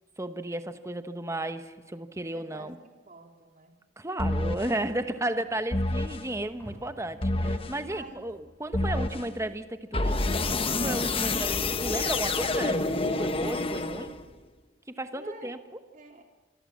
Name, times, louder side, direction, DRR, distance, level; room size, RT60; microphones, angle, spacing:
voice 1, 0.2-2.8 4.0-10.2 10.6-14.1 14.9-15.6, right 1 dB, 15° right, 9 dB, 1.1 m, -34 dB
voice 2, 2.3-3.7 6.3-6.5 7.8-8.3 8.8-9.6 15.1-15.6 15.9-16.2, right 1 dB, 40° right, 3 dB, 3.2 m, -49 dB
sound 1, 4.2-4.7 5.7-6.3 7.2-7.8 8.7-9.3 9.9-14.3, left 2 dB, 30° left, 1.1 m, -28 dB
sound 2, 4.2-12.9, right 1 dB, 10° left, 7.3 m, -53 dB
26.5 x 22.0 x 7.5 m, 1.3 s
head